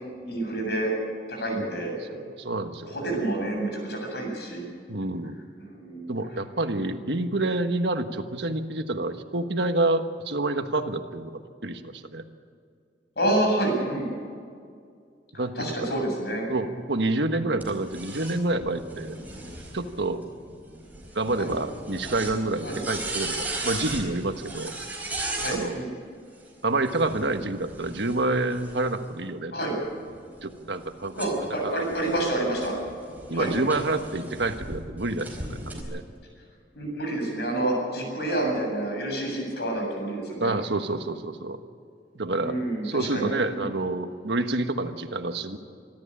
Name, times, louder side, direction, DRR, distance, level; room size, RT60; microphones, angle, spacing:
voice 1, 0.2-0.9 1.3-2.0 2.9-4.6 5.6-6.1 13.2-14.1 15.6-16.5 21.4-21.5 22.6-22.8 25.4-25.9 29.5-29.7 31.2-32.7 33.3-33.5 36.7-40.5 42.4-43.6, right 1 dB, 65° left, 1 dB, 7.7 m, -28 dB
voice 2, 1.6-3.2 4.9-5.5 6.1-12.2 15.4-16.1 16.5-19.2 19.7-20.2 21.1-24.7 25.5-25.8 26.6-29.9 30.4-31.1 31.6-31.8 33.3-35.6 35.9-36.0 40.4-41.6 42.1-45.6, right 2 dB, 80° right, 7 dB, 1.4 m, -28 dB
sound 1, 17.6-25.6 26.7-29.1 29.7-34.8 35.2-35.8, right 2 dB, 10° right, 4.6 m, -37 dB
25.5 x 13.0 x 8.7 m, 2.2 s
head